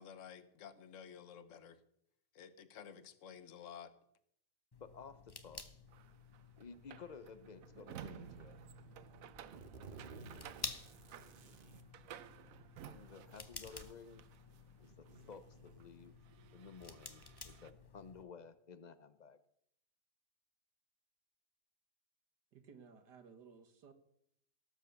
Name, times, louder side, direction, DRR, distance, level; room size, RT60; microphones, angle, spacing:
voice 1, 0.0-1.8 2.3-3.9, left 7 dB, 55° left, 13 dB, 1.3 m, -53 dB
sound 1, 4.7-18.2, left 3 dB, 20° left, 0.6 m, -53 dB
voice 2, 4.8-5.6 6.6-8.6 12.9-14.2 14.8-16.1 16.5-19.4, left 5 dB, 80° left, 13 dB, 0.4 m, -54 dB
sound 2, 5.9-14.6 15.0-17.7, right 10 dB, 65° right, 1.0 m, -55 dB
sound 3, 8.0-8.4 8.9-11.9 13.0-13.1 14.0-14.1 14.6-16.1, right 4 dB, 40° right, 1.0 m, -56 dB
voice 3, 22.5-23.9, right 6 dB, 85° right, 9 dB, 2.1 m, -58 dB
18.0 x 7.4 x 6.9 m, 0.73 s
omnidirectional pair, 1.8 m